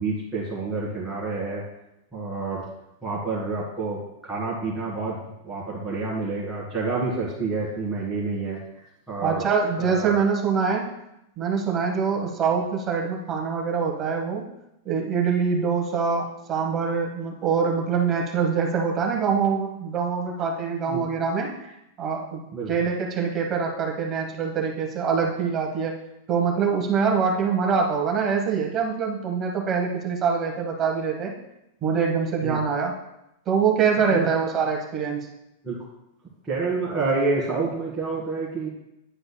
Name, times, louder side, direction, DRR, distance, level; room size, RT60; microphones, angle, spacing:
voice 1, 0.0-1.6 2.1-2.7 3.0-5.2 5.4-9.4 9.8-10.2 20.9-21.0 22.5-22.7 32.4-32.6 34.1-34.3 35.6-35.8 36.4-38.7, right 3 dB, 5° right, -9 dB, 1.7 m, -28 dB
voice 2, 9.2-10.9 11.4-14.5 14.8-21.7 22.0-22.4 22.7-26.0 26.3-31.4 31.8-32.9 33.5-35.3, right 6 dB, 20° right, 0 dB, 1.1 m, -24 dB
10.0 x 7.7 x 2.2 m, 0.87 s
supercardioid pair, 170°, 0 cm